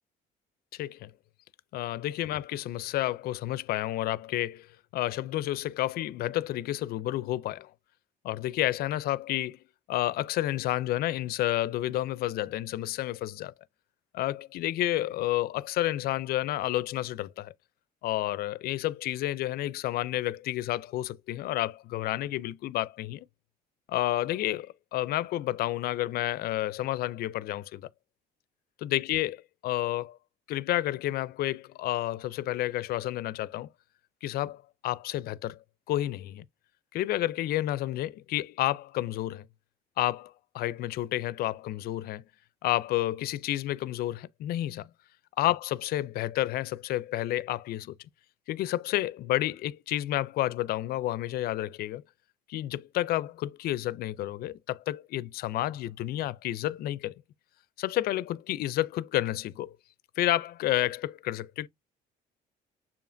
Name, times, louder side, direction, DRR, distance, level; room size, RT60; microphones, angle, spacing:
voice 1, 0.7-1.1 1.7-4.7 4.9-7.7 8.2-9.6 9.9-13.5 14.1-17.5 18.0-23.3 23.9-27.9 28.8-30.2 30.5-33.7 34.2-35.6 35.9-36.4 36.9-39.5 40.0-42.2 42.6-44.9 45.4-47.9 48.5-52.0 52.5-57.1 57.8-59.8 60.2-61.7, left 14 dB, 65° left, 0.4 m, -30 dB
6.9 x 2.8 x 2.5 m
cardioid pair, 110°, 17 cm